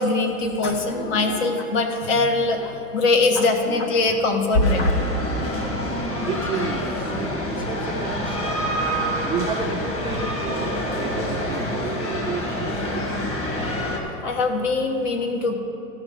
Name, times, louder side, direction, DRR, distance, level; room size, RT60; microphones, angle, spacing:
voice 1, 0.0-4.9 14.2-15.6, left 3 dB, 70° left, 4 dB, 1.5 m, -21 dB
sound 1, 4.6-14.0, equal, 35° left, 1.8 m, -27 dB
voice 2, 6.3-8.6 9.3-12.6 12.9-13.0, right 5 dB, 15° right, 1 dB, 0.3 m, -31 dB
15.0 x 5.8 x 5.0 m, 3.0 s
supercardioid pair, 125°, 39 cm